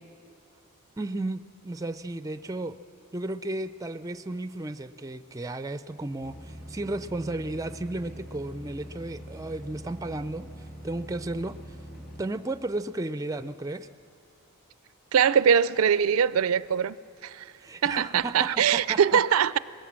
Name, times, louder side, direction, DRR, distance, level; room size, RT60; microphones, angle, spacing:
voice 1, 1.0-2.7 3.1-10.5 10.8-11.8 12.2-13.9 17.6-19.2, right 2 dB, 15° right, 0.4 m, -34 dB
sound 1, 6.2-12.2, equal, 55° left, 6.3 m, -43 dB
voice 2, 15.1-17.0 17.2-17.5 17.8-19.6, right 8 dB, 85° right, 0.4 m, -22 dB
21.0 x 17.0 x 7.5 m
head